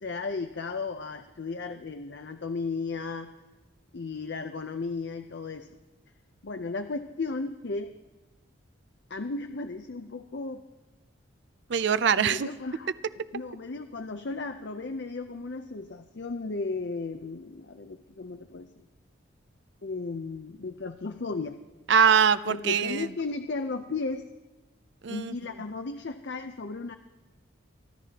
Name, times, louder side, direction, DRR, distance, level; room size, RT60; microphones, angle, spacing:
voice 1, 0.0-3.3 3.9-5.7 6.4-7.9 9.1-10.6 12.2-18.8 19.8-21.6 22.4-24.2 25.1-27.0, left 3 dB, 60° left, 6 dB, 0.6 m, -35 dB
voice 2, 11.7-12.5 21.9-23.1 25.0-25.3, right 7 dB, 60° right, 15 dB, 0.4 m, -22 dB
24.5 x 12.5 x 2.9 m, 1.1 s
head